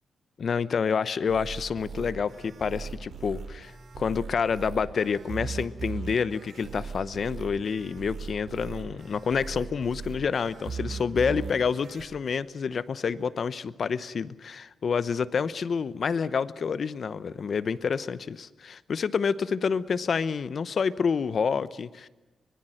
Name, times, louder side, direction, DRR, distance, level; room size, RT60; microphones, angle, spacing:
voice 1, 0.4-22.1, left 6 dB, 50° left, 16 dB, 0.9 m, -28 dB
sound 1, 1.3-12.0, right 5 dB, 70° right, 4.8 m, -39 dB
24.5 x 20.5 x 7.8 m, 1.1 s
cardioid pair, 120°, 0 cm